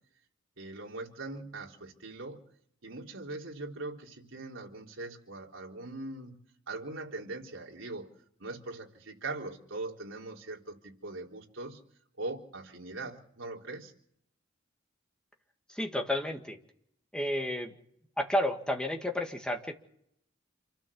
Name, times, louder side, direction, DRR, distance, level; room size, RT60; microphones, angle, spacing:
voice 1, 0.6-2.4 2.8-6.3 6.7-8.1 8.4-11.8 12.2-13.9, right 2 dB, 70° right, 0 dB, 3.7 m, -41 dB
voice 2, 15.7-16.6 17.1-17.8 18.2-19.7, left 1 dB, 5° left, 3 dB, 2.0 m, -31 dB
28.0 x 13.0 x 7.1 m, 0.71 s
head